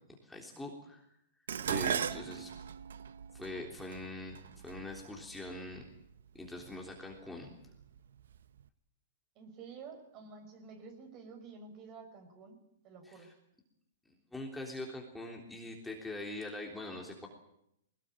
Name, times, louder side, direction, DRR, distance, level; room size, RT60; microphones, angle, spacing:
voice 1, 0.2-1.1 1.7-2.5 3.3-4.4 4.6-5.8 6.3-7.5 13.1-13.3 14.3-17.3, left 2 dB, 5° left, 0 dB, 3.5 m, -43 dB
voice 2, 1.5-2.3 9.3-13.3, right 5 dB, 35° right, 6 dB, 6.1 m, -51 dB
Dishes pots and pans, 1.5-5.8 6.7-7.1 7.5-8.4 8.6-8.7, right 8 dB, 80° right, 1.0 m, -38 dB
20.5 x 19.5 x 9.0 m, 0.78 s
hypercardioid pair, 140°, 0 cm